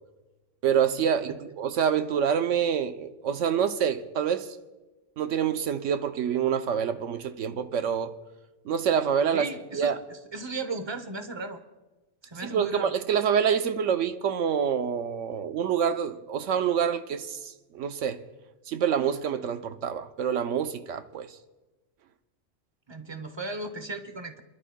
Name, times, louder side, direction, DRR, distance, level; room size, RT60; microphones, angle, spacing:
voice 1, 0.6-4.5 5.2-8.1 8.6-9.5 9.7-10.0 12.5-18.2 18.7-21.3, right 8 dB, 85° right, 1.0 m, -26 dB
voice 2, 9.3-11.6 12.2-12.9 22.9-24.4, right 3 dB, 25° right, 0.7 m, -36 dB
27.0 x 12.0 x 2.2 m
omnidirectional pair, 1.3 m